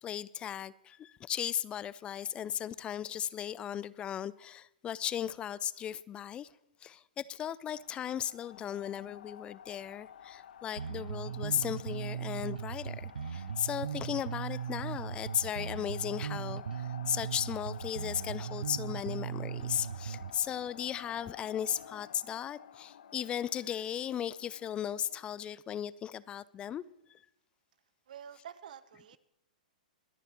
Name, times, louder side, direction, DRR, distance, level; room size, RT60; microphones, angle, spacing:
voice 1, 0.0-6.5 6.8-26.8 27.1-27.2, left 10 dB, 25° left, 0.3 m, -36 dB
sound 1, 7.7-25.4, left 9 dB, 70° left, 0.6 m, -51 dB
Bass guitar, 10.8-20.4, right 7 dB, 90° right, 0.4 m, -38 dB
voice 2, 28.1-29.2, right 8 dB, 70° right, 0.8 m, -48 dB
24.0 x 10.0 x 3.0 m
hypercardioid pair, 120°, 4 cm